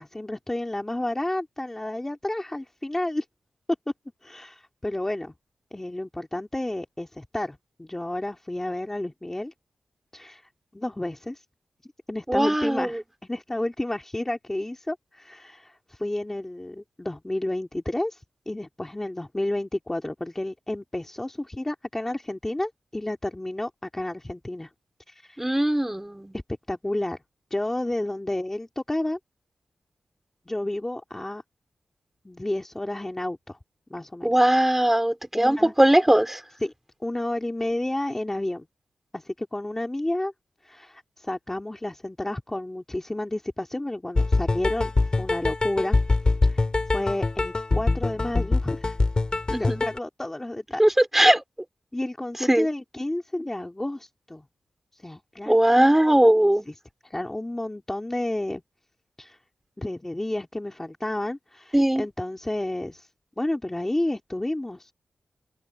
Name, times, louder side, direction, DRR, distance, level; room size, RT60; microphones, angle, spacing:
voice 1, 0.0-3.2 4.2-5.3 5.7-9.5 10.1-11.4 12.1-24.7 25.1-25.6 26.5-27.2 27.5-29.2 30.5-31.4 32.2-33.6 33.9-34.3 35.3-35.7 36.6-36.7 37.0-38.7 39.1-40.3 40.6-44.9 45.2-46.0 46.4-46.6 46.9-49.0 49.5-50.8 51.9-54.4 54.9-56.2 56.7-56.8 57.0-58.6 59.2-59.4 59.8-63.1 63.4-64.9, left 1 dB, 10° left, 2.2 m, -31 dB
voice 2, 12.3-13.0 25.4-26.4 34.2-36.4 49.5-49.8 50.8-51.4 52.5-52.7 55.5-56.7 61.7-62.0, right 1 dB, 10° right, 3.6 m, -20 dB
sound 1, 44.1-50.0, left 3 dB, 25° left, 5.8 m, -23 dB
open air
wide cardioid pair, 150°, 3 cm